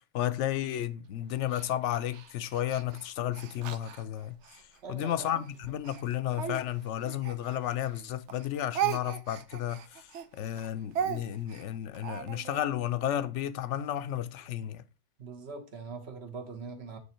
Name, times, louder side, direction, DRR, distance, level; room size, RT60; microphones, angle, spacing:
voice 1, 0.1-14.8, left 11 dB, 85° left, 1.0 m, -33 dB
Speech, 1.5-4.6 5.2-8.0 8.3-12.7, right 9 dB, 85° right, 1.0 m, -37 dB
voice 2, 4.8-5.3 15.2-17.0, right 4 dB, 65° right, 1.5 m, -42 dB
8.6 x 4.0 x 4.3 m
omnidirectional pair, 1.2 m